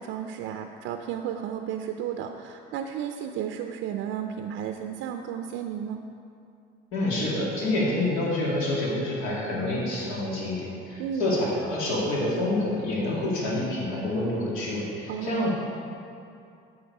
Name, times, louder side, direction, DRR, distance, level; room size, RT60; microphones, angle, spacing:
voice 1, 0.0-6.1 11.0-11.3 15.1-15.5, right 9 dB, 70° right, 5 dB, 0.5 m, -33 dB
voice 2, 6.9-15.5, left 1 dB, 85° left, -5 dB, 2.2 m, -27 dB
8.7 x 6.3 x 4.8 m, 2.5 s
cardioid pair, 110°, 21 cm